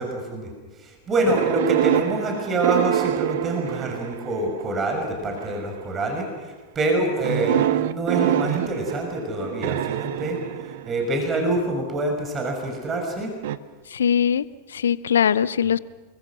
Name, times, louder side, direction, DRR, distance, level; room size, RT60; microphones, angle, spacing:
voice 1, 0.0-13.3, right 2 dB, 25° right, 3 dB, 5.7 m, -26 dB
sound 1, 1.3-4.6 5.4-5.8 7.2-11.3 13.4-13.6, right 12 dB, 55° right, 1.0 m, -26 dB
voice 2, 13.9-15.8, left 8 dB, 65° left, 19 dB, 0.7 m, -21 dB
30.0 x 22.0 x 6.3 m, 1.3 s
figure-of-eight pair, 90°, 0 cm